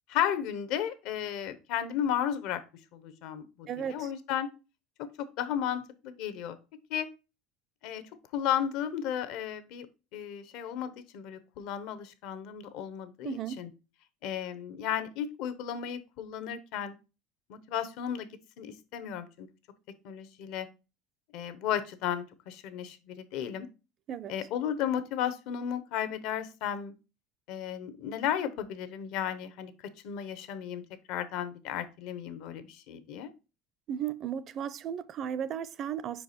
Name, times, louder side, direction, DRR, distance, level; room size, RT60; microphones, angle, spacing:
voice 1, 0.1-2.6 2.9-4.5 5.0-6.6 6.9-7.1 7.8-9.9 10.1-13.7 14.2-16.9 17.5-18.3 18.6-19.5 20.0-20.7 21.3-23.7 24.3-26.9 27.5-29.7 30.0-30.8 31.1-33.3, left 9 dB, 70° left, 0.8 m, -34 dB
voice 2, 3.7-4.1 13.2-13.6 24.1-24.3 33.9-36.2, right 9 dB, 45° right, 0.5 m, -35 dB
4.9 x 4.6 x 4.2 m
supercardioid pair, 100°, 0 cm